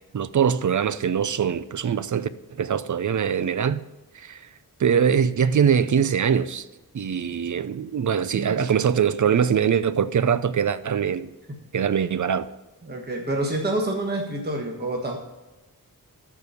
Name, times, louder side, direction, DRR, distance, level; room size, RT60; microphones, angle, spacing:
voice 1, 0.1-2.3 2.6-3.8 4.1-4.4 4.8-6.6 6.9-11.3 11.7-12.5, right 7 dB, 50° right, 0.6 m, -22 dB
voice 2, 8.3-8.7 12.8-15.2, right 1 dB, 25° right, 1.5 m, -28 dB
13.5 x 4.7 x 7.0 m
wide cardioid pair, 110°, 37 cm